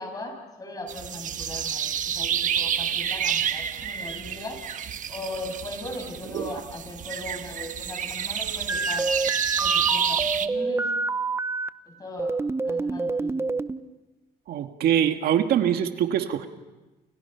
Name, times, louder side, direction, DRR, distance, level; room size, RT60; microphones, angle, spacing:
voice 1, 0.0-4.6 5.1-9.1 9.6-10.9 11.8-12.4 12.6-13.5, left 1 dB, 20° left, 4 dB, 7.7 m, -38 dB
sound 1, 0.9-10.5, right 8 dB, 50° right, 1.3 m, -29 dB
sound 2, 8.7-11.7 12.2-13.8, right 3 dB, 15° right, 0.8 m, -27 dB
voice 2, 14.5-16.5, right 9 dB, 65° right, 6 dB, 1.8 m, -23 dB
30.0 x 29.5 x 5.8 m, 1.1 s
cardioid pair, 110°, 17 cm